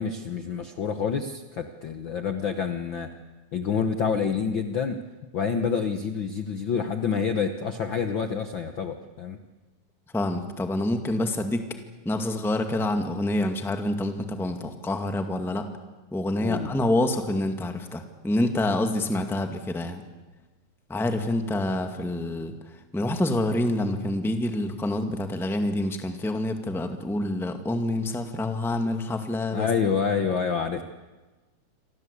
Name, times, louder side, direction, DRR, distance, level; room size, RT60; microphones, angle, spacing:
voice 1, 0.0-3.1 3.5-5.0 5.3-9.4 16.4-16.7 29.5-30.8, left 6 dB, 55° left, 8 dB, 1.4 m, -27 dB
voice 2, 10.1-11.6 12.0-15.7 16.1-20.0 20.9-22.5 22.9-29.7, left 1 dB, ahead, 6 dB, 1.4 m, -27 dB
28.0 x 24.5 x 8.4 m, 1.2 s
omnidirectional pair, 3.5 m